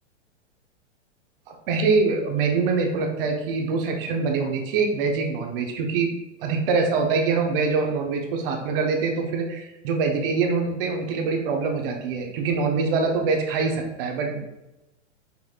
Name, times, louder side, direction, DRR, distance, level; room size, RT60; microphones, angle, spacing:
voice 1, 1.5-6.1 6.4-14.4, right 4 dB, 45° right, 2 dB, 0.8 m, -24 dB
5.3 x 2.9 x 2.4 m, 0.97 s
hypercardioid pair, 110°, 37 cm